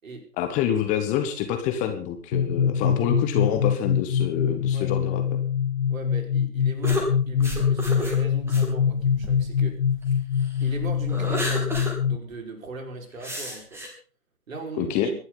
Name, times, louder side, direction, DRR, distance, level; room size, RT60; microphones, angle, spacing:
voice 1, 0.4-5.2 14.8-15.1, left 9 dB, 15° left, 6 dB, 1.3 m, -26 dB
sound 1, 2.3-12.2, left 7 dB, 65° left, 1.1 m, -24 dB
voice 2, 5.9-9.8 10.6-11.8 12.1-13.8 14.5-15.2, right 3 dB, 60° right, 3 dB, 5.3 m, -38 dB
sound 2, 6.8-10.2 10.6-12.0 12.3-12.4 13.2-13.9, equal, 5° right, 3.0 m, -32 dB
24.5 x 11.0 x 4.0 m, 0.41 s
figure-of-eight pair, 125°, 45 cm